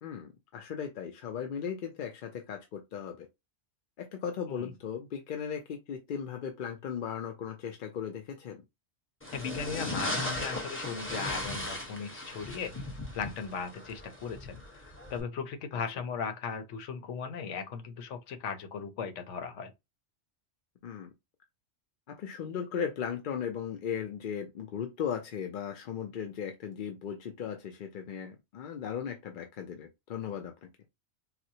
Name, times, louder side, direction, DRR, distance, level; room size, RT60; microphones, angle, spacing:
voice 1, 0.0-3.3 4.0-8.6 20.8-21.1 22.1-30.7, left 7 dB, 60° left, 0.6 m, -37 dB
sound 1, 9.2-15.2, left 1 dB, 10° left, 0.8 m, -37 dB
voice 2, 9.3-12.7 13.1-14.5 14.9-19.7, left 6 dB, 90° left, 1.0 m, -37 dB
4.1 x 2.0 x 2.7 m
omnidirectional pair, 1.2 m